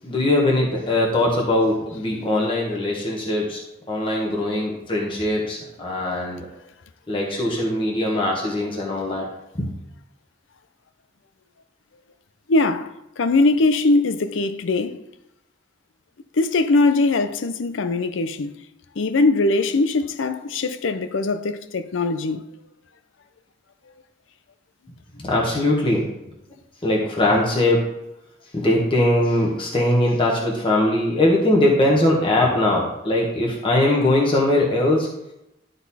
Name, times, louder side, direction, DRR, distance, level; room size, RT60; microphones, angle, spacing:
voice 1, 0.0-3.6 3.9-6.5 7.1-9.3 9.5-9.7 25.2-26.1 26.8-27.9 28.5-35.1, left 1 dB, 30° left, 1.3 m, -21 dB
voice 2, 12.5-15.0 16.3-18.5 19.0-22.4, left 3 dB, 85° left, 0.5 m, -21 dB
11.5 x 4.0 x 4.2 m
head